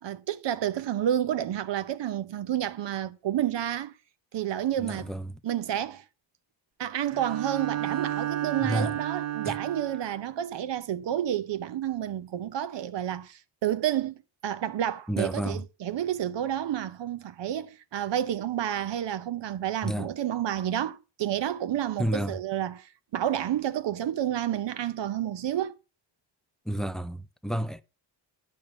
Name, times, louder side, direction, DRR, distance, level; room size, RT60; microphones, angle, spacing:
voice 1, 0.0-3.9 4.3-5.1 5.4-6.0 6.8-25.7, right 11 dB, 60° right, 1.0 m, -30 dB
voice 2, 4.8-5.4 8.6-9.0 9.4-9.6 15.1-15.6 19.8-20.1 22.0-22.4 26.7-27.8, equal, ahead, 0.4 m, -31 dB
Bowed string instrument, 7.1-10.3, right 12 dB, 30° right, 1.1 m, -32 dB
11.0 x 5.4 x 5.4 m
cardioid pair, 105°, 49 cm